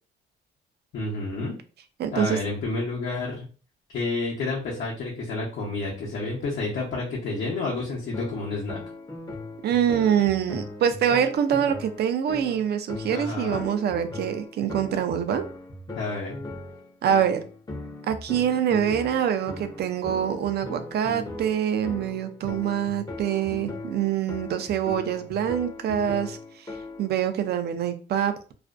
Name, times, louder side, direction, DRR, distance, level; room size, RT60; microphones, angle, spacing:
voice 1, 0.9-1.5 2.1-3.5 3.9-8.8 13.1-13.7 15.9-16.3, left 3 dB, 65° left, -4 dB, 0.8 m, -30 dB
voice 2, 2.0-2.4 9.6-15.4 17.0-17.4 18.1-26.4 26.6-26.7 27.0-28.5, right 9 dB, 55° right, 9 dB, 0.4 m, -25 dB
sound 1, 8.1-27.2, left 2 dB, 20° left, 0.6 m, -39 dB
2.4 x 2.1 x 2.4 m, 0.37 s
cardioid pair, 90°, 20 cm